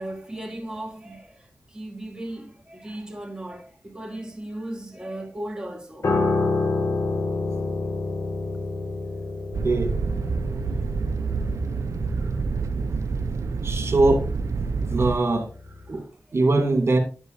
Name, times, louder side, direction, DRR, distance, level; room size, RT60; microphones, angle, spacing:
voice 1, 0.0-6.1 15.9-16.1, right 1 dB, 15° right, 2.4 m, -36 dB
Piano, 6.0-15.4 15.7-15.9, left 3 dB, 75° left, 2.0 m, -29 dB
sound 1, 9.5-15.2, right 4 dB, 90° right, 0.6 m, -27 dB
voice 2, 13.6-14.3 14.9-15.5 15.9-16.0 16.3-17.0, right 2 dB, 55° right, 2.5 m, -21 dB
9.6 x 8.3 x 2.6 m
cardioid pair, 50°, 5 cm